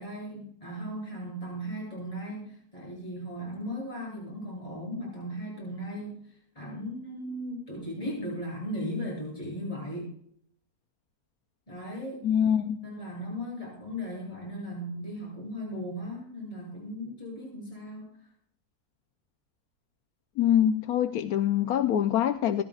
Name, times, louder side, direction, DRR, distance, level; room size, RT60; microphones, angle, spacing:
voice 1, 0.0-6.3 6.6-10.1 11.7-12.2 12.8-18.1, equal, 20° left, -4 dB, 7.5 m, -37 dB
voice 2, 12.2-12.8 20.4-22.6, left 10 dB, 75° left, 7 dB, 1.1 m, -24 dB
26.5 x 12.0 x 2.4 m, 0.63 s
omnidirectional pair, 1.6 m